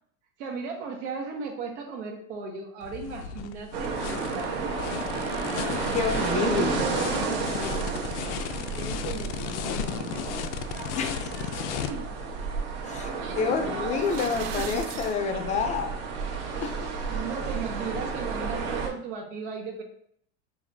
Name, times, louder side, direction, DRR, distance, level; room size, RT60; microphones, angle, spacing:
voice 1, 0.4-4.8 6.4-11.1 11.9-12.2 14.2-14.8 17.1-19.8, right 5 dB, 90° right, 1 dB, 1.4 m, -37 dB
sound 1, 2.8-11.9, left 9 dB, 85° left, 0.5 m, -35 dB
sound 2, 3.7-18.9, right 4 dB, 60° right, 1.2 m, -32 dB
voice 2, 5.9-6.9 11.0-11.5 12.8-13.1 13.3-15.9 16.6-16.7, left 5 dB, 20° left, 6 dB, 0.5 m, -28 dB
sound 3, 13.9-15.2, right 9 dB, 45° right, 0.4 m, -39 dB
6.0 x 2.9 x 2.7 m, 0.64 s
supercardioid pair, 150°, 34 cm